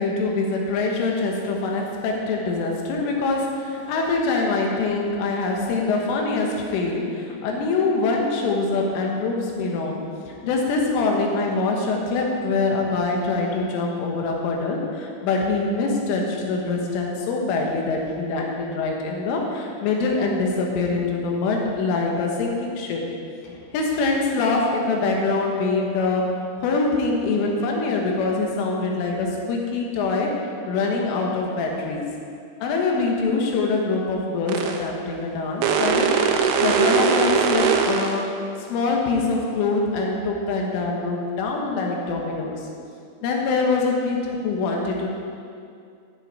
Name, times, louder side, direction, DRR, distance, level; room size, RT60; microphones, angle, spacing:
voice 1, 0.0-23.0 23.4-30.3 30.7-32.1 32.6-38.2 38.7-42.7 43.2-45.1, left 3 dB, 85° left, 0 dB, 3.9 m, -24 dB
sound 1, 34.5-34.8 35.6-38.2, right 6 dB, 85° right, 3.2 m, -20 dB
14.5 x 7.3 x 4.8 m, 2.4 s
omnidirectional pair, 5.5 m